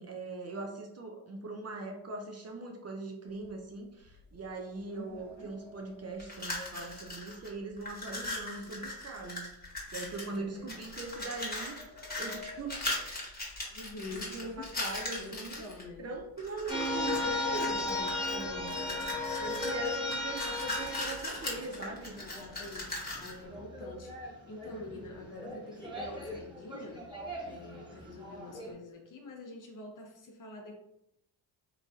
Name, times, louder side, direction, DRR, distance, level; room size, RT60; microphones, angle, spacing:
voice 1, 0.0-9.5 9.9-11.8 12.2-13.3 14.0-15.5 16.0-18.8 19.4-22.1, right 3 dB, 35° right, 2 dB, 0.5 m, -41 dB
sound 1, 3.2-8.6 8.9-9.2 9.7-9.9 10.7-14.0 14.3-20.5 21.1-21.2 21.5-21.8 22.1-22.8, left 2 dB, 75° right, 0.9 m, -52 dB
voice 2, 4.9-5.5 8.6-8.8 10.3-10.9 13.7-14.7 15.2-16.1 18.8-19.3 22.2-27.0 27.4-30.8, left 2 dB, 40° left, 2 dB, 0.7 m, -47 dB
sound 2, 6.2-7.5 7.8-10.4 10.7-15.8 16.4-17.2 17.5-23.4, left 2 dB, 20° left, 1.2 m, -39 dB
sound 3, 16.7-22.7 23.1-28.7, left 2 dB, 10° right, 1.2 m, -36 dB
3.1 x 2.5 x 2.3 m, 0.84 s
supercardioid pair, 50°, 47 cm